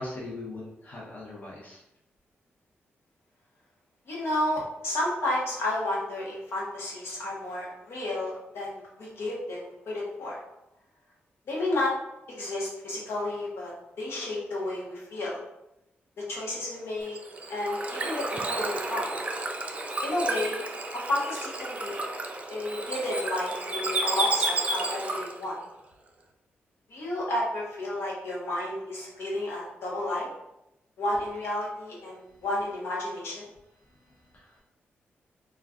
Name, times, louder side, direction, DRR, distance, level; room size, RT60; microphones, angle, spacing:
voice 1, 0.0-1.8 34.3-34.4, left 2 dB, 40° left, -4 dB, 0.8 m, -39 dB
voice 2, 4.1-10.4 11.5-11.9 12.3-15.4 16.2-17.2 17.5-19.1 20.0-20.6 20.9-22.0 22.5-25.6 26.9-30.3 31.0-33.5, left 1 dB, 70° left, -4 dB, 0.9 m, -31 dB
Bird / Water, 17.0-25.4, right 2 dB, 30° right, 0.4 m, -31 dB
2.3 x 2.2 x 3.6 m, 0.88 s
cardioid pair, 80°, 4 cm